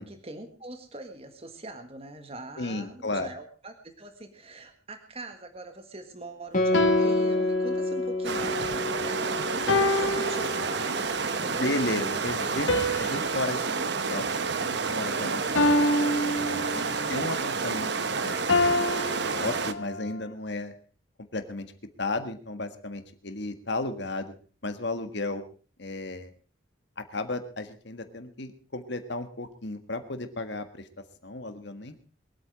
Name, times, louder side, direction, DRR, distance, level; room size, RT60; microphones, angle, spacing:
voice 1, 0.1-11.7 16.8-17.2, right 2 dB, 30° right, 7 dB, 1.6 m, -43 dB
voice 2, 2.6-3.3 11.4-13.8 14.0-14.3 14.6-15.7 16.3-18.7 19.0-20.7 21.3-21.7 22.0-24.3 24.6-25.4 25.8-26.3 27.0-32.0, left 2 dB, 60° left, 8 dB, 1.6 m, -34 dB
Guitar, 6.5-11.5, left 2 dB, 40° left, 2.1 m, -29 dB
sound 1, 6.7-8.1 9.7-11.1 12.7-15.0 15.6-17.1 18.5-20.1, left 1 dB, 75° left, 1.3 m, -28 dB
sound 2, 8.2-19.7, right 4 dB, 60° right, 1.0 m, -29 dB
23.0 x 8.7 x 4.9 m, 0.39 s
head